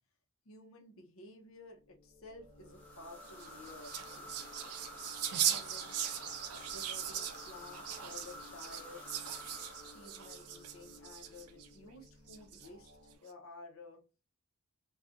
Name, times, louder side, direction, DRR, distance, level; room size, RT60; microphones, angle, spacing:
voice 1, 0.4-4.5 5.4-6.0 6.7-9.2 9.9-12.9 13.2-14.0, left 2 dB, 65° left, 2 dB, 0.7 m, -53 dB
sound 1, 1.6-13.2, left 1 dB, 35° right, 0.8 m, -58 dB
sound 2, 2.6-11.1, left 1 dB, 5° left, 0.8 m, -51 dB
sound 3, 3.3-11.7 12.3-12.9, right 10 dB, 85° right, 0.5 m, -39 dB
3.7 x 2.4 x 2.4 m, 0.33 s
head